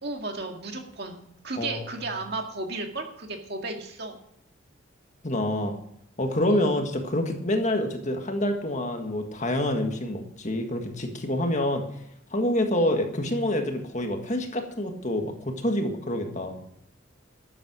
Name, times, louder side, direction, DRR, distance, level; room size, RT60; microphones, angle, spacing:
voice 1, 0.0-4.2 6.5-6.7 12.7-13.0, right 3 dB, 50° right, 3 dB, 2.1 m, -34 dB
voice 2, 1.6-2.0 5.2-5.7 6.2-11.8 12.3-16.6, left 1 dB, 35° left, 4 dB, 1.7 m, -27 dB
13.0 x 9.0 x 6.1 m, 0.75 s
head